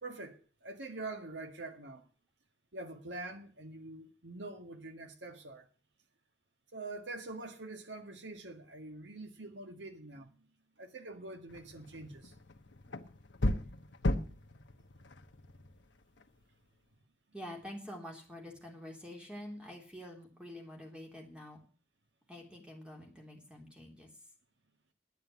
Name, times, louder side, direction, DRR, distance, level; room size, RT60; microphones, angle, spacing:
voice 1, 0.0-2.0 2.7-5.7 6.7-10.5 10.8-12.3, right 2 dB, 75° right, 1.8 m, -45 dB
sound 1, 11.5-16.4, left 1 dB, 75° left, 1.1 m, -37 dB
voice 2, 17.3-21.6 22.3-24.1, left 1 dB, 5° right, 3.4 m, -47 dB
10.5 x 9.0 x 8.3 m
head